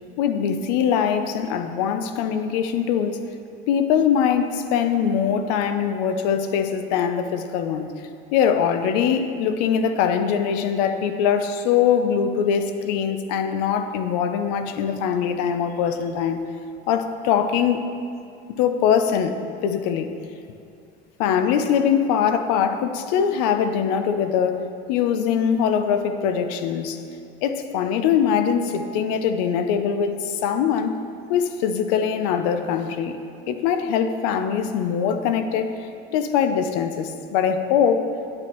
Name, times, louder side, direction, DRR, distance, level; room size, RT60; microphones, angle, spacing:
voice 1, 0.2-3.2 3.7-8.0 8.3-16.4 16.9-17.9 18.6-19.4 19.6-20.1 21.2-24.6 24.9-27.0 27.4-31.0 31.3-33.2 33.5-38.1, left 7 dB, 85° left, 9 dB, 0.6 m, -22 dB
9.8 x 8.8 x 3.0 m, 2.5 s
cardioid pair, 170°, 20 cm